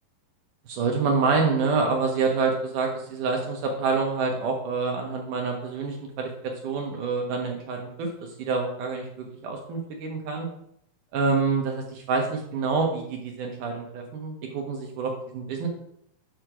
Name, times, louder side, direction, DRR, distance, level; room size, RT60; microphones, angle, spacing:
voice 1, 0.7-8.1 8.4-10.5 11.1-15.7, right 4 dB, 70° right, 1 dB, 2.2 m, -27 dB
7.7 x 3.2 x 5.9 m, 0.70 s
omnidirectional pair, 4.4 m